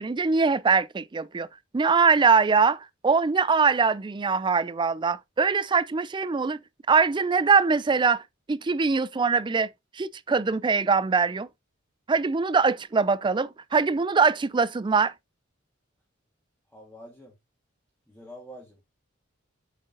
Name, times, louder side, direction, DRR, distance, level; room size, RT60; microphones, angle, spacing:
voice 1, 0.0-1.5 1.7-6.6 6.9-8.2 8.5-9.7 9.9-11.5 12.1-15.1, right 5 dB, 25° right, 0.4 m, -22 dB
voice 2, 16.7-17.3 18.1-18.8, equal, 5° left, 1.8 m, -46 dB
7.5 x 3.8 x 3.8 m
head